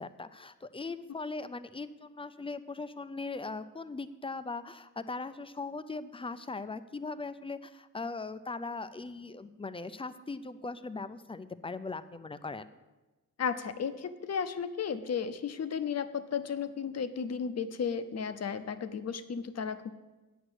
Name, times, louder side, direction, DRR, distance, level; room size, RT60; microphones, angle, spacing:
voice 1, 0.0-12.7, left 3 dB, 15° left, 13 dB, 0.4 m, -39 dB
voice 2, 13.4-19.9, left 6 dB, 45° left, 12 dB, 0.7 m, -34 dB
9.2 x 6.0 x 7.9 m, 1.1 s
wide cardioid pair, 135°, 35 cm